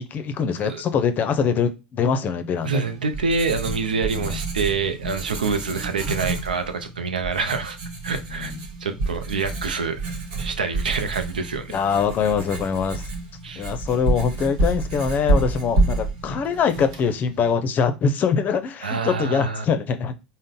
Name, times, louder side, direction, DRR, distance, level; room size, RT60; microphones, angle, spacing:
voice 1, 0.0-2.9 4.1-4.4 8.3-8.6 11.7-13.1 13.6-20.1, left 6 dB, 40° left, 0.6 m, -23 dB
voice 2, 2.6-7.8 8.0-8.5 8.8-10.0 10.4-11.7 13.4-13.7 18.8-19.7, right 4 dB, 85° right, 0.4 m, -26 dB
Writing, 2.7-17.5, right 2 dB, 65° right, 0.9 m, -29 dB
3.8 x 2.1 x 3.7 m
hypercardioid pair, 75°, 5 cm